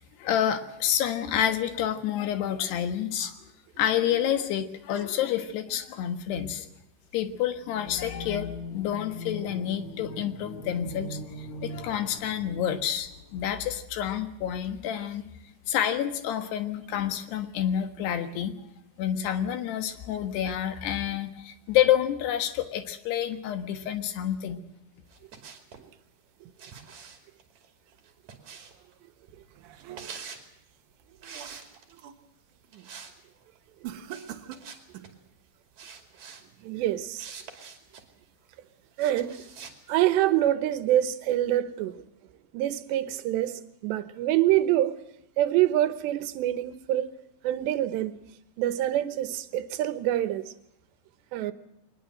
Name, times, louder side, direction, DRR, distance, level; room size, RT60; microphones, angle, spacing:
voice 1, 0.2-3.4 3.8-6.7 7.1-15.3 15.7-18.5 19.0-24.6, left 10 dB, 75° left, 3.6 m, -28 dB
sound 1, 7.6-13.6, left 1 dB, 50° left, 2.5 m, -40 dB
sound 2, 25.1-25.9 26.6-28.9 29.7-30.5 31.2-32.0 32.7-33.2 33.4-33.6 34.1-35.1 35.8-36.4 37.2-38.0 39.0-39.8, right 6 dB, 45° right, 3.5 m, -45 dB
sound 3, 29.3-30.4 30.9-32.3 32.6-33.0 33.8-35.2, right 11 dB, 65° right, 2.1 m, -44 dB
voice 2, 36.6-37.3 39.0-39.4 39.9-42.0 42.5-45.0 45.4-47.1 47.4-48.2 48.6-50.4 51.3-51.5, right 13 dB, 85° right, 3.3 m, -25 dB
22.5 x 20.5 x 7.8 m
omnidirectional pair, 4.9 m